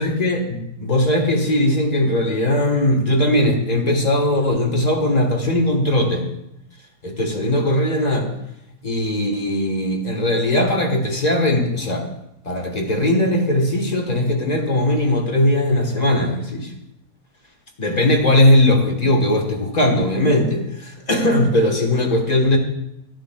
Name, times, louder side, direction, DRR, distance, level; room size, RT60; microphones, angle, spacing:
voice 1, 0.0-6.2 7.0-8.3 8.8-12.1 12.4-16.7 17.8-22.6, left 1 dB, 30° left, 3 dB, 1.1 m, -19 dB
13.0 x 7.9 x 2.2 m, 0.84 s
omnidirectional pair, 1.8 m